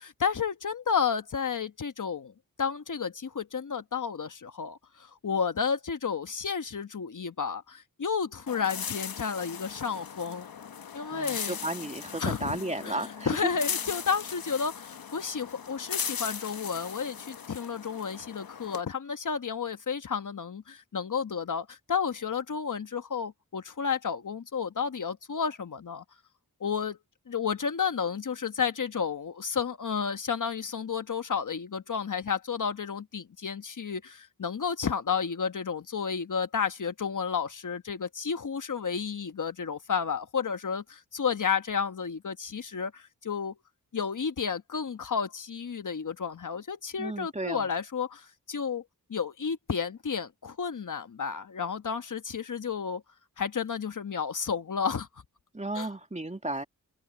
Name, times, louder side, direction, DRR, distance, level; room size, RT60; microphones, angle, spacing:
voice 1, 0.0-2.3 2.6-10.5 10.9-11.6 12.2-12.6 12.8-26.0 26.6-27.0 27.3-43.5 43.9-48.8 49.1-53.0 53.4-55.1 55.7-55.9, left 6 dB, 60° left, 1.3 m, -31 dB
sound 1, 8.5-18.8, left 7 dB, 80° left, 1.3 m, -38 dB
voice 2, 11.1-13.5 47.0-47.7 55.5-56.6, right 2 dB, 20° right, 2.4 m, -34 dB
cardioid pair, 55°, 35 cm